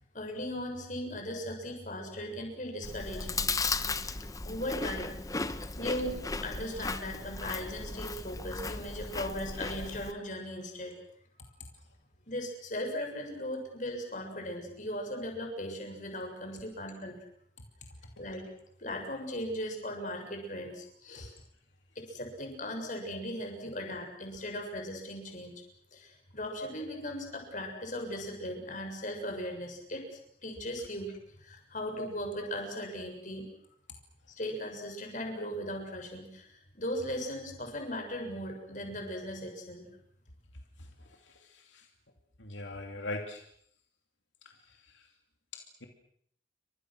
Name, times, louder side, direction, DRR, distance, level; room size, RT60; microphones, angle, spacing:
voice 1, 0.1-3.4 4.4-5.1 5.4-10.9 11.3-11.5 12.3-17.2 18.2-18.5 18.8-21.3 22.0-25.5 25.9-31.1 31.4-33.4 34.4-39.9, equal, 45° left, 3 dB, 7.4 m, -38 dB
Chewing mastication, 2.8-10.1, left 3 dB, 20° left, 1.0 m, -36 dB
voice 2, 41.2-41.9 42.4-43.4 44.9-45.1 45.5-45.9, left 2 dB, 85° left, 3 dB, 2.7 m, -41 dB
30.0 x 24.5 x 6.4 m, 0.67 s
head